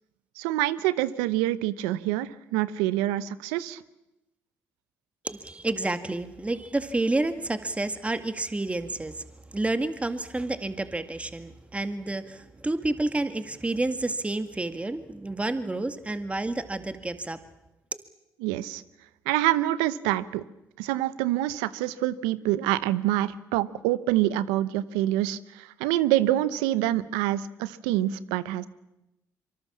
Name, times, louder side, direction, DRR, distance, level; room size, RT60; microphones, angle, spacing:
voice 1, 0.4-3.8 18.4-18.8 19.3-20.4 20.8-28.7, right 14 dB, 90° right, 17 dB, 0.8 m, -26 dB
voice 2, 5.2-9.2 9.5-17.4 17.9-18.0, right 2 dB, 15° right, 10 dB, 1.9 m, -29 dB
24.5 x 24.0 x 7.3 m, 0.95 s
supercardioid pair, 60°, 7 cm